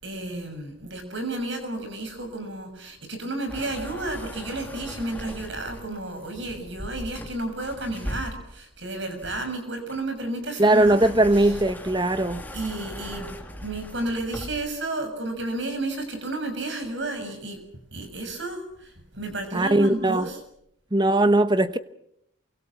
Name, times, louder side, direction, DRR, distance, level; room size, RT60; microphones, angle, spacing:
voice 1, 0.0-11.6 12.5-13.3 13.6-17.6 17.9-20.4, right 2 dB, 60° right, 6.9 m, -32 dB
sound 1, 3.5-6.0 7.2-8.7 9.2-14.8, equal, 10° left, 2.5 m, -39 dB
voice 2, 10.6-12.4 19.5-20.3 20.9-21.8, right 1 dB, 20° right, 1.1 m, -20 dB
28.5 x 24.5 x 5.9 m
head